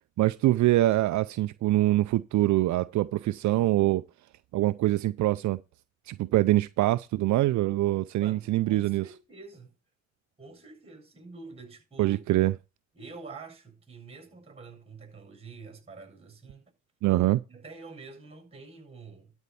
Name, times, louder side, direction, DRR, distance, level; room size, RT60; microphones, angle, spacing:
voice 1, 0.2-4.0 4.5-5.6 6.1-9.0 12.0-12.5 17.0-17.4, right 16 dB, 70° right, 0.5 m, -24 dB
voice 2, 8.2-9.7 10.4-12.2 12.9-16.7 17.5-19.3, right 4 dB, 20° right, 7.3 m, -47 dB
12.5 x 4.5 x 6.9 m
cardioid pair, 90°, 30 cm